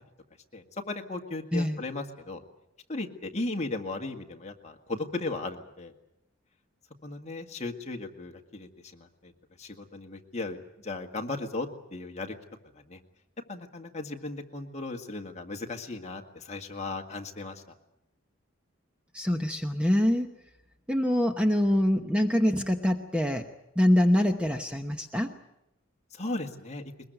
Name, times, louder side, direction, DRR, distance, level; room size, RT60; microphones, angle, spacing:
voice 1, 0.5-2.4 2.9-5.9 7.0-9.3 9.6-12.4 12.7-13.0 13.5-17.6 26.1-26.8, left 2 dB, 30° left, 4 dB, 1.8 m, -36 dB
voice 2, 19.1-20.3 20.9-23.5 23.8-25.3, left 1 dB, 5° right, 5 dB, 0.9 m, -24 dB
21.5 x 21.5 x 9.1 m, 0.85 s
head